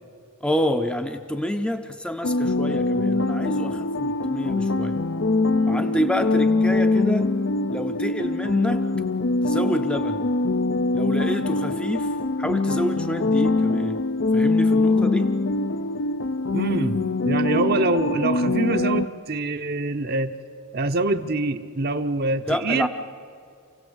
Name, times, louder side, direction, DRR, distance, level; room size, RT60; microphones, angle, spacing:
voice 1, 0.4-5.0 5.7-7.3 7.7-8.8 9.4-10.3 10.9-14.0 14.3-15.3 22.5-22.9, equal, 5° left, 7 dB, 0.6 m, -28 dB
sound 1, 2.2-19.1, left 2 dB, 60° left, 0.6 m, -23 dB
voice 2, 16.5-20.3 20.7-22.9, right 2 dB, 45° right, 7 dB, 0.8 m, -25 dB
28.0 x 17.0 x 8.1 m, 2.5 s
head